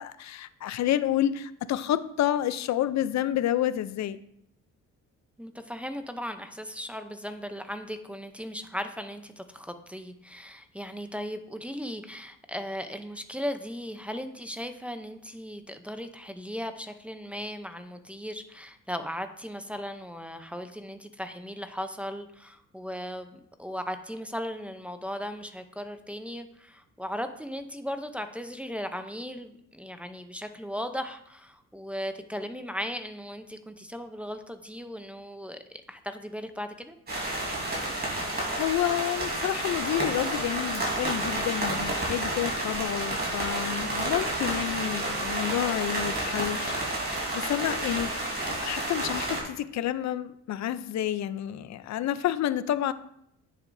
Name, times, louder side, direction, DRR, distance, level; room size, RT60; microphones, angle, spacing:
voice 1, 0.0-4.2 38.6-48.1 48.6-52.9, left 12 dB, 65° left, 0.6 m, -29 dB
voice 2, 5.4-37.0, equal, 5° right, 0.7 m, -37 dB
sound 1, 37.1-49.4, right 1 dB, 35° right, 3.5 m, -30 dB
9.6 x 7.7 x 2.7 m
cardioid pair, 90°, 30 cm